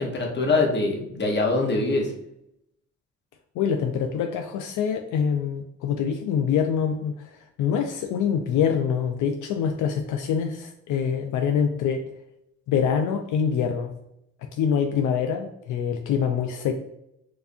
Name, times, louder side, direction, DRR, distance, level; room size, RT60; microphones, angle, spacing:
voice 1, 0.0-2.1, left 3 dB, 35° left, 0 dB, 1.1 m, -23 dB
voice 2, 3.6-7.3 7.6-12.0 12.7-13.9 14.6-16.8, left 7 dB, 80° left, 4 dB, 0.5 m, -25 dB
4.6 x 2.6 x 2.6 m, 0.79 s
cardioid pair, 90°, 30 cm